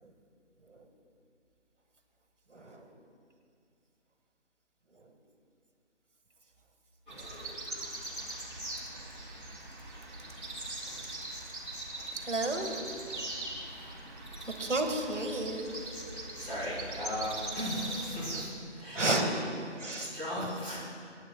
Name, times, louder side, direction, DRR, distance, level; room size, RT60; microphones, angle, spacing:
voice 1, 2.5-2.9 7.1-7.6 9.0-9.1 10.9-11.0 12.0-12.8 14.6-15.8 18.9-19.4 19.7-20.1 20.4-20.5, right 2 dB, 85° right, 4 dB, 1.6 m, -33 dB
sound 1, 7.1-18.5, right 2 dB, 45° right, 2.3 m, -41 dB
voice 2, 15.9-20.8, left 1 dB, 10° left, -15 dB, 3.1 m, -38 dB
24.0 x 10.0 x 2.2 m, 2.4 s
figure-of-eight pair, 175°, 36 cm